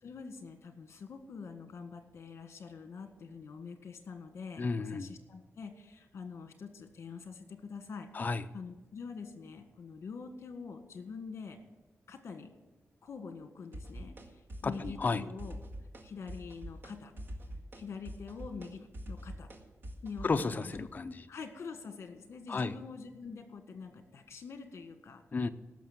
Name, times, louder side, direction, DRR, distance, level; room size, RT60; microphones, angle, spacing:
voice 1, 0.0-8.1 8.5-11.6 12.1-12.5 13.0-15.6 16.0-17.1 17.7-19.5 20.0-20.3 20.7-20.9 21.3-25.2, left 5 dB, 65° left, 7 dB, 1.7 m, -45 dB
voice 2, 4.6-5.1 8.1-8.4 14.6-15.2 20.2-21.2 22.5-22.7 25.3-25.5, left 4 dB, 35° left, 9 dB, 0.6 m, -32 dB
sound 1, 13.7-14.2 14.5-15.1 15.4-16.0 16.3-16.9 17.2-20.8, equal, 50° right, 1.9 m, -44 dB
16.5 x 6.4 x 7.4 m, 1.1 s
wide cardioid pair, 160°, 5 cm